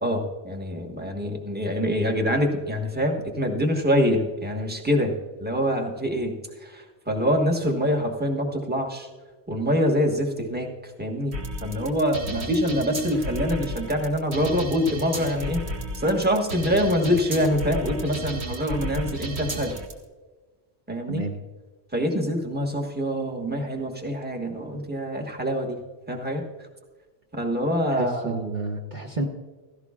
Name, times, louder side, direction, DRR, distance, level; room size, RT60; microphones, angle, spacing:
voice 1, 0.0-6.4 6.6-9.1 9.5-10.7 11.0-11.3 11.6-15.6 15.9-19.8 20.9-21.2 21.9-25.8 26.1-26.4 27.3-28.4, equal, 10° right, 2 dB, 1.4 m, -25 dB
sound 1, 11.3-19.9, right 1 dB, 85° right, 1.8 m, -33 dB
voice 2, 27.9-29.3, right 2 dB, 45° right, 1 dB, 1.2 m, -30 dB
16.5 x 14.5 x 2.4 m, 1.3 s
omnidirectional pair, 1.1 m